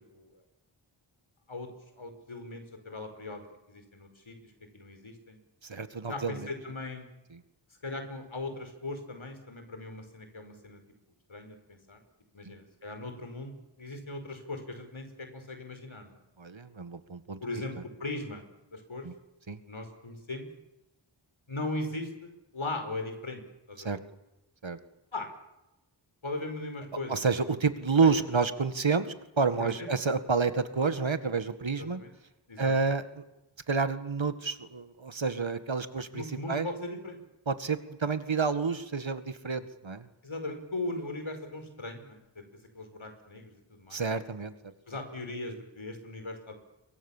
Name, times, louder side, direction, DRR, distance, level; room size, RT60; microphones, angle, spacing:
voice 1, 2.0-5.4 6.1-7.1 7.8-10.8 11.3-12.0 12.3-16.2 17.4-17.7 18.0-18.4 18.7-19.1 19.7-20.5 21.5-23.4 23.7-23.9 25.1-25.3 26.2-27.2 28.0-28.2 29.6-29.9 31.8-32.1 32.5-32.9 36.1-37.2 40.2-42.4 42.7-44.0 44.9-46.5, left 2 dB, 85° left, 6 dB, 5.4 m, -39 dB
voice 2, 5.6-6.5 7.3-7.4 12.4-12.5 16.4-17.4 19.0-19.1 19.5-19.6 23.8-24.0 24.6-24.8 27.1-32.0 32.6-33.2 33.7-36.7 37.5-40.1 43.9-44.7, right 4 dB, 75° right, 11 dB, 2.0 m, -29 dB
26.5 x 24.0 x 7.4 m, 0.96 s
wide cardioid pair, 45°, 47 cm